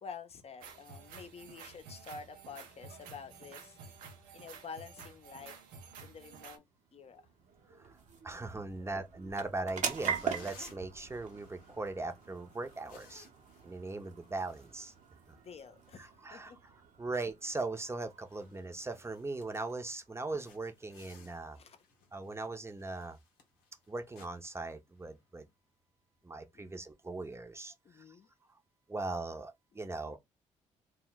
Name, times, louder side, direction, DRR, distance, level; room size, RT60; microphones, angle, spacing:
voice 1, 0.0-3.9 4.3-5.6 6.0-6.6 6.9-7.2 15.4-16.6 21.6-21.8 26.5-26.7 27.8-28.3, left 5 dB, 45° left, 0.6 m, -49 dB
sound 1, 0.6-6.6, right 5 dB, 85° right, 0.5 m, -51 dB
sound 2, 6.6-21.2, right 7 dB, 60° right, 0.8 m, -44 dB
voice 2, 8.2-13.3 13.6-14.9 15.3-15.4 16.0-16.5 17.0-21.6 22.1-23.2 23.9-25.5 26.2-28.1 28.9-30.2, right 3 dB, 20° right, 0.7 m, -39 dB
sound 3, 9.8-15.5 15.8-16.0 16.5-16.8 17.1-17.2 17.7-17.8 18.1-19.9 20.3-25.4, left 5 dB, 90° left, 0.7 m, -61 dB
2.2 x 2.1 x 3.8 m
supercardioid pair, 55°, 14 cm